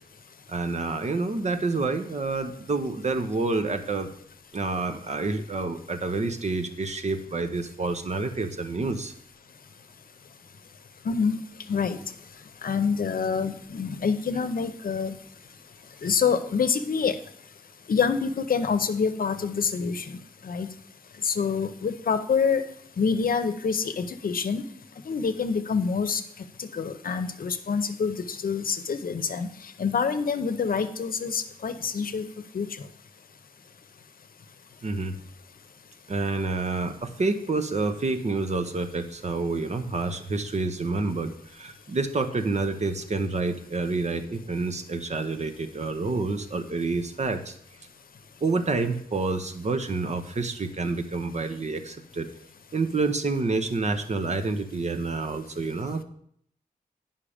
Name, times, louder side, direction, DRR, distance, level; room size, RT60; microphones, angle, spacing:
voice 1, 0.5-4.1 4.5-9.1 34.8-35.2 36.1-47.6 48.4-52.3 52.7-56.0, right 3 dB, 50° right, 8 dB, 0.8 m, -28 dB
voice 2, 11.0-11.4 11.7-12.0 12.6-15.1 16.0-17.2 17.9-20.2 20.4-20.7 21.2-22.6 23.0-24.6 25.1-26.2 26.6-29.5 29.8-32.3 32.5-32.7, left 5 dB, 70° left, 10 dB, 0.7 m, -26 dB
10.0 x 5.7 x 5.0 m, 0.66 s
wide cardioid pair, 110°, 15 cm